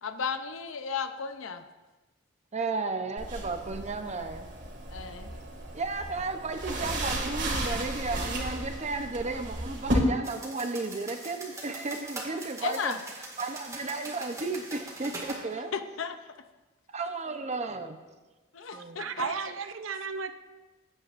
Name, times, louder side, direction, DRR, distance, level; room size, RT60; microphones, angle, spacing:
voice 1, 0.0-1.6 4.9-5.3 12.6-13.0 15.7-16.2 18.5-19.3, left 6 dB, 90° left, 9 dB, 0.7 m, -34 dB
voice 2, 2.5-4.5 5.7-13.0 13.4-15.7 16.9-18.0 18.7-19.1, right 3 dB, 35° right, 7 dB, 0.7 m, -34 dB
sound 1, 3.2-9.9, right 1 dB, 65° right, 2.1 m, -35 dB
sound 2, 10.2-15.4, right 2 dB, 15° right, 2.0 m, -42 dB
voice 3, 18.7-20.3, right 5 dB, 85° right, 10 dB, 0.6 m, -34 dB
17.0 x 8.9 x 2.6 m, 1.2 s
head